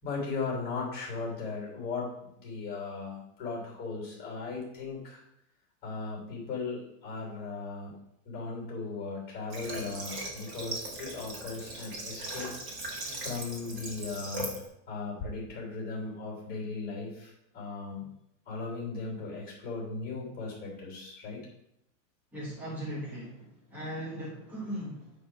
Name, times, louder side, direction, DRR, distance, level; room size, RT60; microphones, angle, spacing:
voice 1, 0.0-5.2 5.8-7.9 8.2-12.5 12.8-14.5 14.9-18.1 18.4-21.4, left 4 dB, 25° left, -2 dB, 3.3 m, -37 dB
Water / Water tap faucet, 9.5-14.6, right 2 dB, 30° right, 1.9 m, -39 dB
voice 2, 22.3-25.1, equal, 5° right, -7 dB, 1.7 m, -38 dB
9.5 x 3.6 x 6.1 m, 0.78 s
supercardioid pair, 170°, 39 cm